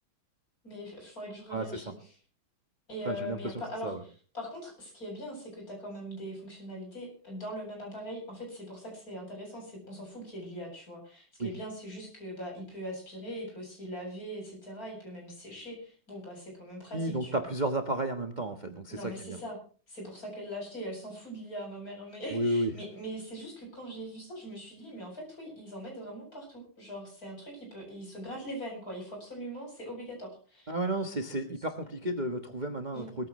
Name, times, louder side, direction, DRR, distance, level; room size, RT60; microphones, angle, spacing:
voice 1, 0.6-2.1 2.9-17.4 18.9-19.6 19.9-30.7 32.9-33.1, equal, 45° left, 1 dB, 8.4 m, -41 dB
voice 2, 1.5-1.8 3.0-4.0 11.4-11.5 16.9-19.4 22.3-22.7 30.7-33.3, right 1 dB, 25° right, 4 dB, 1.3 m, -32 dB
21.5 x 15.0 x 3.2 m, 0.39 s
omnidirectional pair, 2.2 m